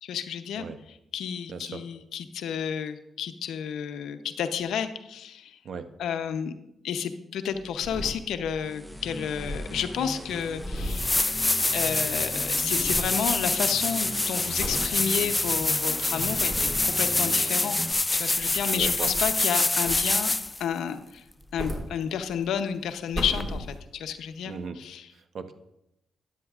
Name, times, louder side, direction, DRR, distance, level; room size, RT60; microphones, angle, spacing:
voice 1, 0.0-5.6 6.0-6.5 6.8-11.1 11.7-17.8 18.1-20.3 20.6-21.2 21.5-25.1, left 8 dB, 85° left, 8 dB, 0.7 m, -31 dB
voice 2, 1.5-1.8 5.6-5.9 18.7-19.1 24.5-24.8 25.1-25.5, right 5 dB, 65° right, 9 dB, 0.9 m, -37 dB
sound 1, 7.5-8.7 8.9-9.0 9.2-12.0 12.2-13.2 13.7-14.0 14.6-14.9 15.5-15.6 16.1-17.0 18.0-19.4 19.8-20.4 21.2-22.5 22.9-24.1 24.7-24.8, equal, 25° right, 2.9 m, -37 dB
sound 2, 8.6-17.9, equal, 5° right, 0.9 m, -39 dB
sound 3, 10.4-10.5 10.8-20.6 23.4-23.5, left 2 dB, 25° left, 0.4 m, -26 dB
13.0 x 10.5 x 2.4 m, 0.86 s
supercardioid pair, 55°, 0 cm